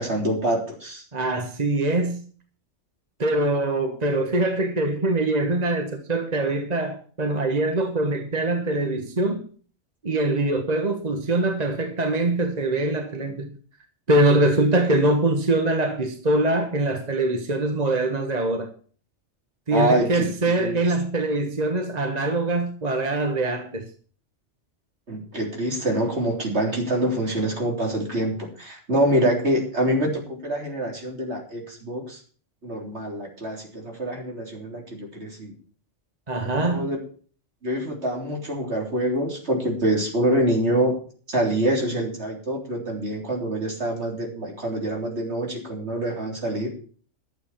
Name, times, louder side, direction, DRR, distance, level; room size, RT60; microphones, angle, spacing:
voice 1, 0.0-1.0 19.7-20.8 25.1-32.2 32.6-35.6 36.4-37.0 37.6-41.0 41.3-46.7, right 1 dB, 60° right, 3.8 m, -25 dB
voice 2, 1.1-2.2 3.2-9.5 10.0-13.5 14.1-18.7 19.7-23.9 36.3-36.9, right 2 dB, 35° right, 1.4 m, -23 dB
12.0 x 7.9 x 7.2 m
omnidirectional pair, 1.3 m